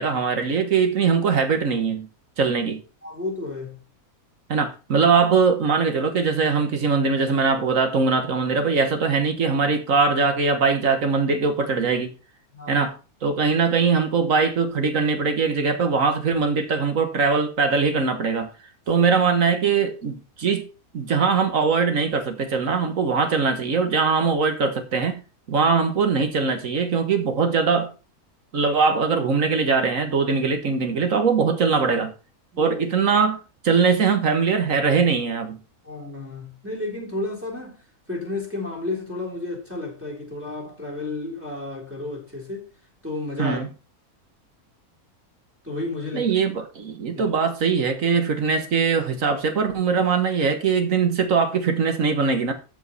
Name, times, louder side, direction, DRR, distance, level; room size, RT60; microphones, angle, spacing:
voice 1, 0.0-2.1 2.4-2.8 4.5-12.1 12.7-12.9 13.2-18.5 18.9-20.6 20.9-25.2 25.5-27.9 28.5-32.1 32.6-33.4 33.6-35.6 43.4-43.7 46.1-52.5, right 5 dB, 60° right, 1.6 m, -21 dB
voice 2, 3.0-3.8 12.5-12.9 19.0-19.1 25.6-25.7 32.5-32.8 35.8-42.7 43.0-43.6 45.6-46.6 47.1-47.3, left 2 dB, 10° right, 3.5 m, -32 dB
13.0 x 5.2 x 4.1 m
omnidirectional pair, 1.6 m